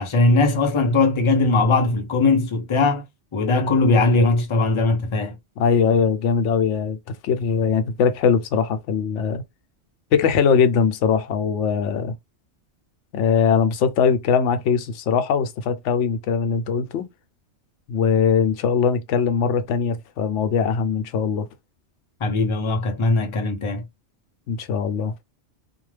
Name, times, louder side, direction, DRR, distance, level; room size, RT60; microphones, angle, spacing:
voice 1, 0.0-3.0 3.3-5.4 22.2-23.8, left 3 dB, 35° left, 0.5 m, -19 dB
voice 2, 5.6-7.0 7.2-9.4 10.1-12.2 13.1-17.1 17.9-21.5 24.5-25.2, left 6 dB, 80° left, 0.9 m, -21 dB
2.4 x 2.1 x 3.2 m
omnidirectional pair, 1.2 m